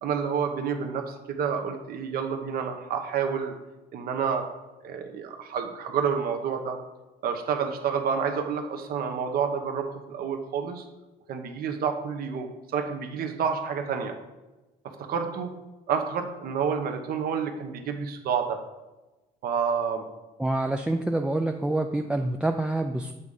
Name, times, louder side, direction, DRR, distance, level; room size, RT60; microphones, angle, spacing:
voice 1, 0.0-3.5 3.9-4.5 4.8-6.8 7.2-10.8 11.3-14.1 15.0-15.5 15.9-18.6 19.4-20.1, right 6 dB, 65° right, 5 dB, 1.0 m, -29 dB
voice 2, 20.4-23.1, right 2 dB, 5° right, 4 dB, 0.3 m, -27 dB
8.1 x 3.6 x 5.4 m, 1.1 s
cardioid pair, 110°, 17 cm